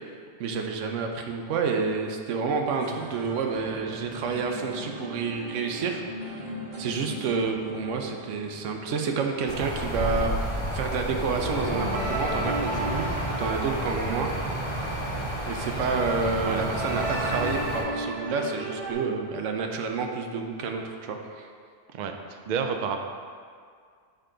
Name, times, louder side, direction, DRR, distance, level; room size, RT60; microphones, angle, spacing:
voice 1, 0.4-6.5 6.8-14.3 15.5-21.5, right 5 dB, 85° right, 3 dB, 1.0 m, -29 dB
sound 1, 2.8-9.8 11.2-14.9 16.5-18.9, right 1 dB, 40° right, 1.0 m, -35 dB
sound 2, 9.5-17.8, equal, 25° left, 1.1 m, -31 dB
voice 2, 21.9-23.0, right 6 dB, 60° right, 5 dB, 0.4 m, -30 dB
6.7 x 5.0 x 3.8 m, 2.1 s
omnidirectional pair, 1.2 m